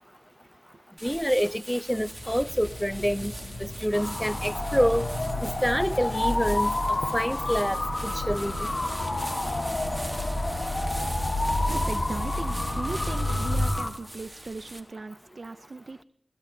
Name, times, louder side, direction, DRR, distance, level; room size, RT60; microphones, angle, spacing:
voice 1, 1.0-3.3 3.6-5.1 5.4-6.7 7.1-8.7, equal, ahead, 0.5 m, -27 dB
sound 1, 1.0-14.8, right 1 dB, 15° right, 1.3 m, -41 dB
sound 2, 1.9-13.7, left 1 dB, 80° left, 3.6 m, -33 dB
sound 3, 3.9-13.9, left 2 dB, 45° left, 1.3 m, -31 dB
voice 2, 11.7-16.0, right 3 dB, 65° right, 0.5 m, -38 dB
21.0 x 16.5 x 2.7 m
wide cardioid pair, 50°, 0 cm